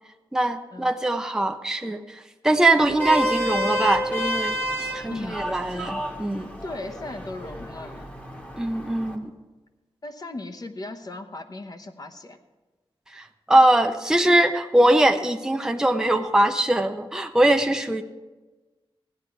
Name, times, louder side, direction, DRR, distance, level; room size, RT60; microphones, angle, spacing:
voice 1, 0.3-4.6 4.9-6.5 8.6-9.3 13.1-18.0, right 1 dB, 5° right, 5 dB, 0.6 m, -22 dB
Vehicle horn car horn honking, 2.8-9.2, equal, 15° left, 1.3 m, -30 dB
voice 2, 5.1-5.5 6.6-8.0 10.0-12.4, left 2 dB, 40° left, 7 dB, 0.9 m, -37 dB
15.5 x 10.0 x 4.6 m, 1.2 s
wide cardioid pair, 130°, 10 cm